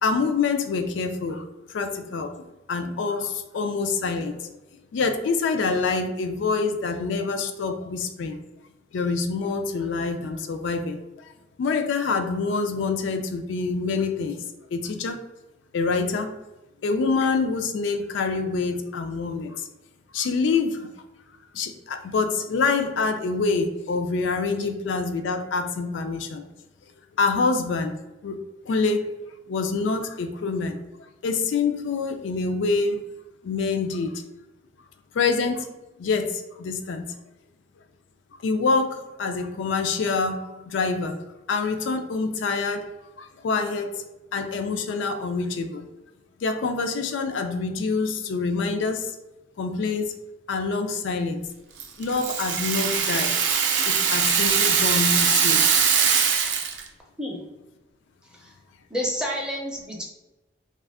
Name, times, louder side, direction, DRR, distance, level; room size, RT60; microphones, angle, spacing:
voice 1, 0.0-2.3 2.7-4.5 4.9-8.4 8.9-11.0 11.6-15.2 15.7-16.4 16.8-19.7 20.1-20.9 21.5-26.5 27.2-28.0 28.2-28.4 28.7-29.1 29.5-30.8 31.2-33.0 33.4-34.2 35.1-35.7 36.0-37.1 38.4-41.2 41.5-42.9 43.2-44.0 44.3-45.9 46.4-49.2 49.6-50.1 50.5-51.4 52.0-53.3 53.9-55.6, left 4 dB, 80° left, 7 dB, 0.3 m, -26 dB
Rattle (instrument), 51.8-56.9, right 6 dB, 70° right, 0.4 m, -21 dB
voice 2, 58.9-60.0, equal, 5° right, -1 dB, 0.5 m, -29 dB
2.4 x 2.4 x 3.5 m, 1.0 s
head